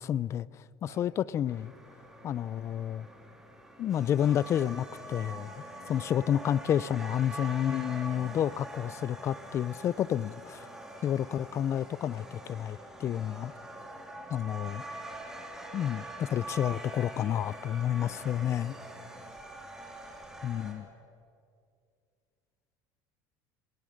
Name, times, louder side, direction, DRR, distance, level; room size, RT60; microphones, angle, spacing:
voice 1, 0.0-1.7 2.2-3.1 3.8-10.7 11.0-13.5 14.3-14.8 15.7-18.7 20.4-20.9, left 10 dB, 30° left, 0.4 m, -30 dB
annoying-neighbors-on-saturday-afternoon, 1.5-20.7, right 1 dB, 5° right, 3.2 m, -44 dB
voice 2, 8.0-9.2 17.8-19.2 20.1-21.1, right 4 dB, 75° right, 7.1 m, -57 dB
27.5 x 17.5 x 6.5 m
cardioid pair, 140°, 9 cm